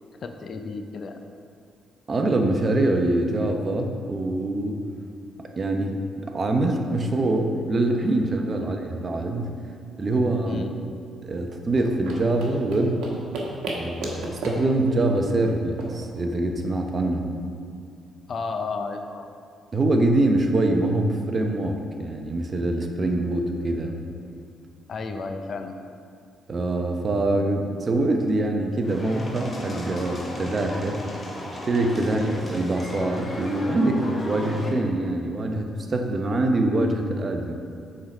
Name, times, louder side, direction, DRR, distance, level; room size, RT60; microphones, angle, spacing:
voice 1, 0.2-1.2 8.6-8.7 10.5-10.7 18.3-19.3 24.9-25.8 32.1-32.4, left 4 dB, 50° left, 6 dB, 0.5 m, -32 dB
voice 2, 2.1-4.8 5.4-9.6 10.0-10.6 11.2-13.0 13.8-17.3 19.7-24.0 26.5-31.0 31.7-37.5, right 2 dB, 35° right, 4 dB, 0.8 m, -24 dB
sound 1, 11.6-16.9, right 1 dB, 80° right, 1.2 m, -35 dB
sound 2, 28.8-34.7, left 1 dB, 30° left, 1.2 m, -35 dB
7.7 x 3.9 x 5.4 m, 2.3 s
cardioid pair, 90°, 0 cm